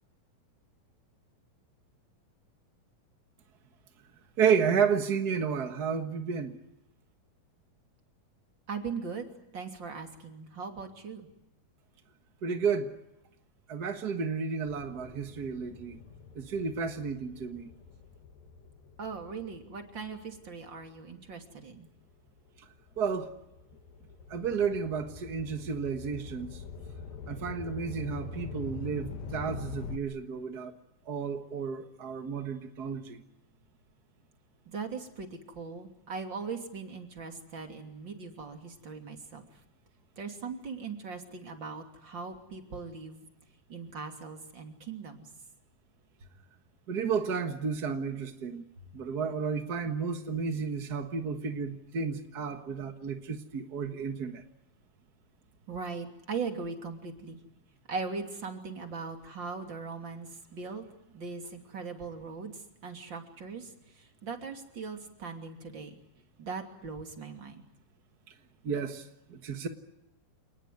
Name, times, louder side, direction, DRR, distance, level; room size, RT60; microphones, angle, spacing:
voice 1, 4.4-6.6 12.4-12.9 13.7-16.0 16.3-17.7 23.0-23.4 24.3-26.6 27.3-30.7 31.1-33.2 46.9-48.6 48.9-54.4 68.6-69.7, right 6 dB, 55° right, 7 dB, 1.0 m, -32 dB
voice 2, 8.7-11.3 19.0-21.9 34.7-35.3 35.5-39.5 40.2-43.2 43.7-45.3 55.7-57.4 57.9-60.8 61.1-62.5 62.8-63.7 64.0-65.9 66.4-67.6, right 5 dB, 35° right, 5 dB, 3.2 m, -39 dB
sound 1, 14.7-21.4 22.0-30.0, left 5 dB, 70° left, 3.5 m, -45 dB
28.5 x 19.5 x 9.5 m, 0.88 s
omnidirectional pair, 4.2 m